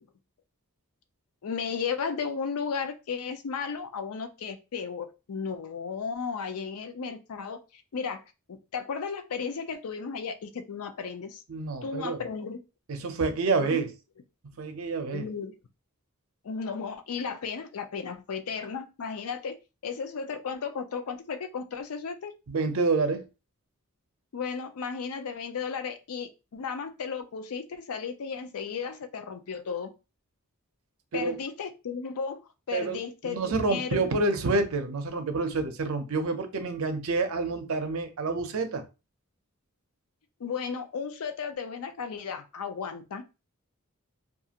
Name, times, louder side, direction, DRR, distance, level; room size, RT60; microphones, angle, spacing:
voice 1, 1.4-8.2 8.5-11.4 11.8-12.6 13.6-13.8 15.1-15.6 16.4-19.6 19.8-22.3 24.3-29.9 31.1-32.4 32.7-34.0 40.4-43.2, left 6 dB, 80° left, 0.5 m, -34 dB
voice 2, 11.5-12.2 12.9-13.9 14.6-15.3 22.5-23.2 31.1-31.4 32.7-38.8, right 3 dB, 65° right, 0.6 m, -28 dB
2.4 x 2.4 x 2.8 m
head